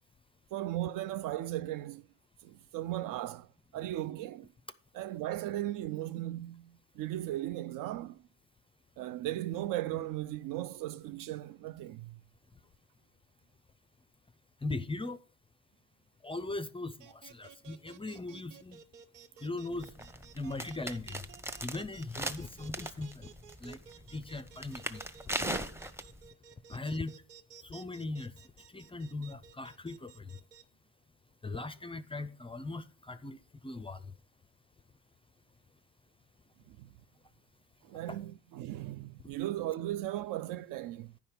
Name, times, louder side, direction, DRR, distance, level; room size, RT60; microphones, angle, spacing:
voice 1, 0.5-2.1 2.4-4.5 4.9-8.2 9.0-12.2 36.7-36.9 37.8-41.1, right 14 dB, 45° right, 0.5 m, -37 dB
voice 2, 14.6-15.2 16.2-18.8 19.4-19.9 20.4-21.2 21.6-23.3 23.6-23.8 24.1-25.0 26.7-27.1 27.6-28.3 28.7-30.3 31.4-33.4 33.6-34.0 38.1-38.2, left 2 dB, 10° left, 0.5 m, -39 dB
sound 1, 17.0-30.6, right 8 dB, 80° right, 0.9 m, -54 dB
sound 2, 19.7-26.3, right 1 dB, 5° right, 0.9 m, -40 dB
10.5 x 5.5 x 6.6 m
figure-of-eight pair, 50°, 48 cm